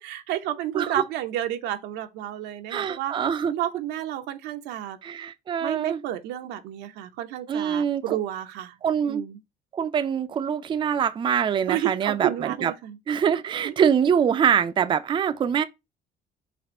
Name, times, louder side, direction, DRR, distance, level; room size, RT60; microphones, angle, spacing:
voice 1, 0.0-3.1 3.5-5.0 5.6-8.8 9.1-9.4 11.7-13.0 13.6-13.8, right 12 dB, 90° right, 0.6 m, -31 dB
voice 2, 2.7-3.5 5.0-6.0 7.5-8.2 8.8-9.2 9.7-12.7 13.1-15.6, right 8 dB, 30° right, 0.4 m, -24 dB
4.2 x 2.5 x 4.2 m
cardioid pair, 110°, 17 cm